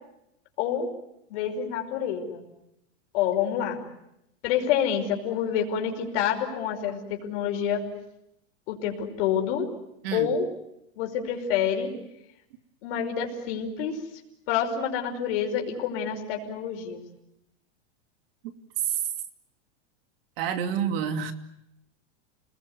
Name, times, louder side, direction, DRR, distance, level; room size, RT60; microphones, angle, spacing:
voice 1, 0.6-0.9 1.3-2.4 3.1-3.8 4.4-7.8 8.7-9.7 10.1-10.5 11.0-12.0 12.8-14.0 14.5-17.0, left 8 dB, 55° left, 2 dB, 5.6 m, -27 dB
voice 2, 20.4-21.3, right 7 dB, 50° right, 8 dB, 2.7 m, -28 dB
30.0 x 20.5 x 9.7 m, 0.84 s
supercardioid pair, 165°, 36 cm